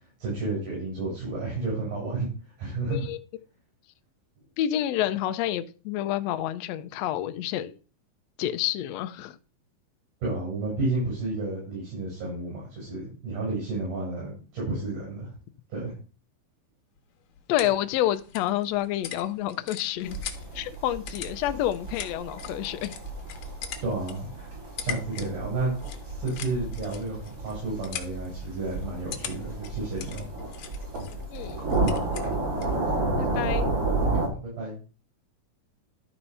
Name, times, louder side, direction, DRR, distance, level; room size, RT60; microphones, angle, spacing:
voice 1, 0.2-2.3 2.6-3.0 10.2-15.3 15.7-15.9 23.8-24.3 24.8-25.8 26.2-30.3 34.3-34.8, right 2 dB, 70° right, 6.6 m, -31 dB
voice 2, 4.6-7.8 8.4-9.4 17.5-20.2 20.5-23.0 31.3-31.7 33.2-33.7, left 12 dB, 90° left, 1.4 m, -28 dB
sound 1, 17.0-32.8, left 9 dB, 65° left, 2.1 m, -43 dB
sound 2, 20.0-34.3, right 2 dB, 45° right, 4.6 m, -31 dB
12.0 x 4.4 x 5.5 m
omnidirectional pair, 3.8 m